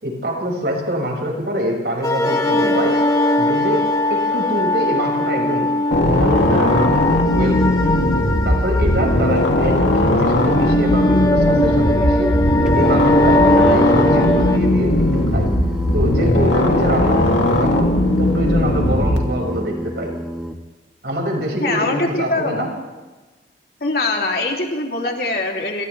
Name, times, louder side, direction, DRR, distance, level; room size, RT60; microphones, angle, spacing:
voice 1, 0.0-3.0 3.4-5.7 6.0-7.8 8.4-12.3 12.7-15.5 15.9-17.9 18.2-20.1 21.0-22.7, equal, 65° right, 0 dB, 6.3 m, -24 dB
sound 1, 2.0-14.6, left 1 dB, 20° left, 2.0 m, -20 dB
sound 2, 5.9-19.2, left 1 dB, 90° left, 2.8 m, -18 dB
Singing, 12.7-20.6, equal, 5° right, 1.4 m, -30 dB
voice 2, 21.6-22.7 23.8-25.8, left 2 dB, 55° left, 0 dB, 3.3 m, -22 dB
29.0 x 27.0 x 3.5 m, 1.3 s
head